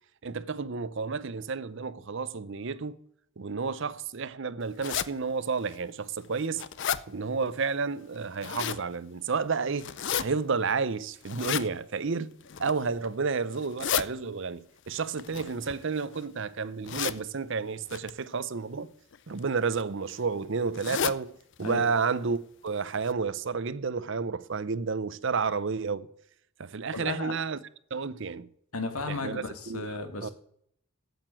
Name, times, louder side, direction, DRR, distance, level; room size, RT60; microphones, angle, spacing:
voice 1, 0.2-3.0 3.4-6.6 7.1-12.3 12.6-18.9 19.3-21.3 21.6-26.1 26.6-27.6 27.9-28.5 29.1-30.3, right 5 dB, 55° right, 0.6 m, -31 dB
sound 1, 4.8-5.1 5.7-5.8 6.2-7.0 8.1-8.8 9.8-10.2 11.2-11.7 12.4-12.8 13.5-14.0 15.2-16.2 16.8-17.2 17.9-18.1 19.1-19.4 19.7-19.8 20.1-20.2 20.7-21.2 21.6-21.7 22.0-22.1 22.7-22.8 23.1-23.2, left 8 dB, 55° left, 0.5 m, -32 dB
voice 2, 26.9-27.3 28.7-30.3, left 3 dB, 90° left, 2.0 m, -34 dB
9.0 x 8.1 x 8.9 m
head